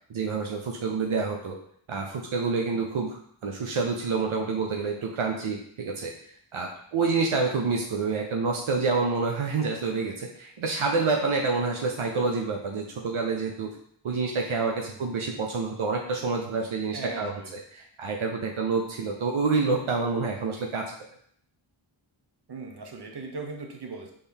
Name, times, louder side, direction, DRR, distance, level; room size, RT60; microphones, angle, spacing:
voice 1, 0.1-1.6 1.9-6.1 6.5-13.7 14.0-17.3 17.7-20.9, right 4 dB, 75° right, 1 dB, 0.7 m, -28 dB
voice 2, 14.7-15.4 16.9-17.5 22.5-24.1, right 3 dB, 55° right, 3 dB, 0.9 m, -39 dB
4.4 x 3.5 x 3.5 m, 0.63 s
cardioid pair, 40°, 49 cm